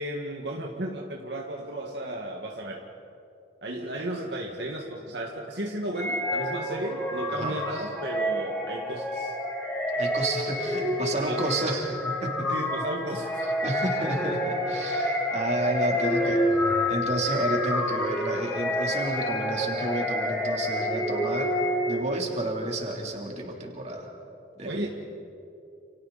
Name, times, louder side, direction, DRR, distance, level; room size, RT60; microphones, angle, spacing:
voice 1, 0.0-2.9 3.6-9.3 11.2-11.4 12.5-13.3 16.0-16.6 24.6-24.9, right 1 dB, 65° right, 0 dB, 1.8 m, -34 dB
sound 1, 6.0-22.2, left 1 dB, 10° left, 3.7 m, -28 dB
voice 2, 10.0-12.5 13.6-16.4 16.9-21.5 21.8-24.1 24.6-24.9, right 1 dB, 40° right, 0 dB, 3.4 m, -31 dB
30.0 x 29.5 x 4.2 m, 2.8 s
head